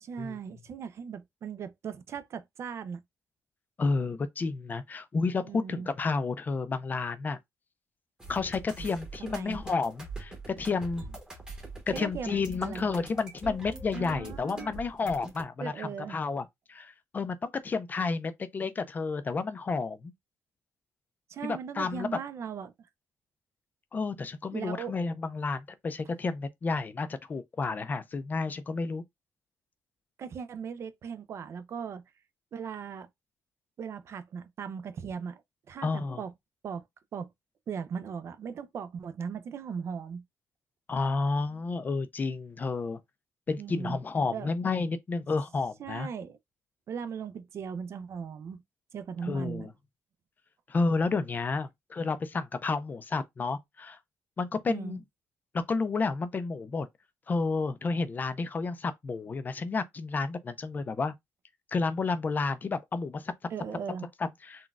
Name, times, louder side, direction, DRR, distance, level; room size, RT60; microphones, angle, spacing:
voice 1, 0.0-3.0 5.4-5.9 9.2-9.6 11.9-12.9 13.9-14.7 15.6-16.2 21.3-22.7 24.5-24.9 30.2-32.0 32.5-33.1 33.8-35.4 35.7-36.3 36.6-36.8 37.1-37.3 37.7-40.2 43.6-44.0 44.3-44.5 45.8-46.4 46.9-48.6 48.9-49.7 54.7-55.0 63.5-64.1, right 6 dB, 50° right, 0.4 m, -38 dB
voice 2, 3.8-7.4 8.3-11.0 11.9-20.1 21.4-22.2 23.9-29.0 35.8-36.2 40.9-43.0 43.5-46.1 49.2-49.7 50.7-54.0 54.4-55.0 55.5-56.9 57.3-61.1 61.7-63.3 64.2-64.7, left 4 dB, 30° left, 0.4 m, -31 dB
sound 1, 8.2-15.4, right 2 dB, 15° right, 1.0 m, -43 dB
3.9 x 2.2 x 2.3 m
cardioid pair, 110°, 6 cm